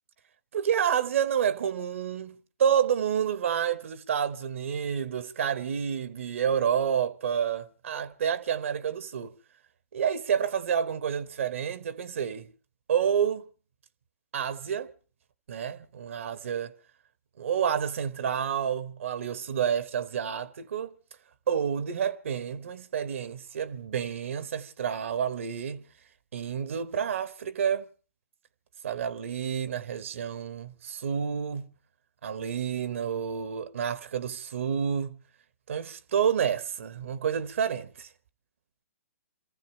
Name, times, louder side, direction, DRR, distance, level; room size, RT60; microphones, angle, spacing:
voice 1, 0.5-9.3 9.9-12.5 12.9-13.4 14.3-14.9 15.5-16.7 17.4-20.9 21.5-25.8 26.3-27.9 28.8-31.7 32.2-35.2 35.7-38.1, right 8 dB, 60° right, 1.0 m, -29 dB
27.5 x 15.0 x 3.2 m
figure-of-eight pair, 120°, 8 cm